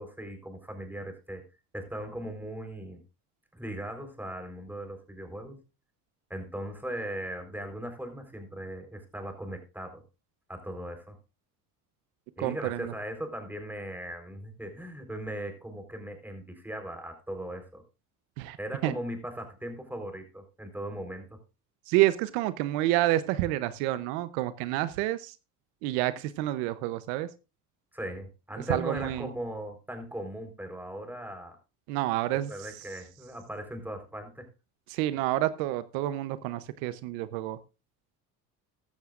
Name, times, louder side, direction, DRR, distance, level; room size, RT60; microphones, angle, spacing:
voice 1, 0.0-1.4 1.7-3.0 3.5-5.6 6.3-10.0 10.5-11.1 12.4-17.8 18.6-21.4 27.9-31.6 32.5-34.5, right 1 dB, 5° right, 5 dB, 4.0 m, -38 dB
voice 2, 12.4-12.9 18.4-18.6 18.8-18.9 21.9-25.3 25.8-27.3 28.7-29.3 31.9-32.5 34.9-37.6, right 15 dB, 85° right, 14 dB, 0.9 m, -28 dB
15.0 x 12.5 x 2.5 m, 0.29 s
supercardioid pair, 85°, 39 cm